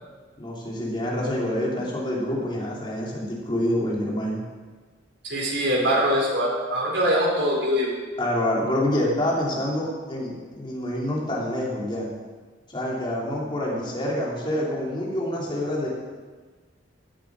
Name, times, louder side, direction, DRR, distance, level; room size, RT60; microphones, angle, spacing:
voice 1, 0.4-4.4 8.2-12.1 12.7-15.9, left 1 dB, 25° left, -4 dB, 3.4 m, -27 dB
voice 2, 5.3-7.9, equal, 85° right, -3 dB, 5.0 m, -23 dB
16.5 x 11.5 x 5.0 m, 1.4 s
head